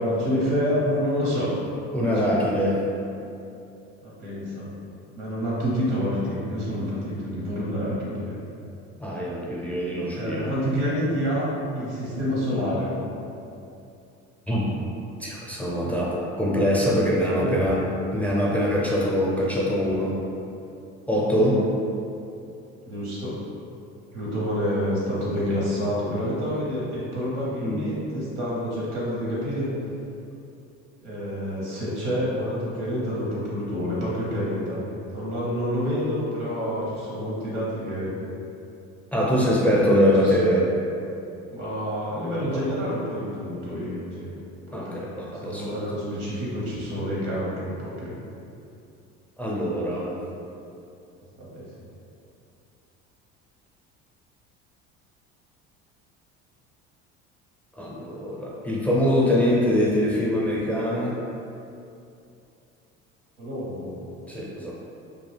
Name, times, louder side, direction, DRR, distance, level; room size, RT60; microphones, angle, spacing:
voice 1, 0.0-1.5 1.9-2.3 4.0-4.7 5.2-8.4 10.2-12.9 17.3-17.8 18.9-19.1 21.1-21.6 22.9-23.4 24.1-29.7 31.0-34.8 35.1-38.1 39.2-40.5 41.5-44.3 44.7-45.1 45.4-48.1 51.4-51.7 63.4-64.1, equal, 90° right, -7 dB, 1.0 m, -28 dB
voice 2, 1.9-2.9 9.0-10.5 14.5-14.8 15.2-17.8 18.1-20.2 21.1-21.6 27.4-27.9 39.1-40.7 42.5-42.6 44.7-45.8 49.4-50.2 57.8-61.2 64.3-64.8, equal, 5° left, -5 dB, 0.5 m, -23 dB
2.4 x 2.3 x 3.3 m, 2.7 s
hypercardioid pair, 75°, 34 cm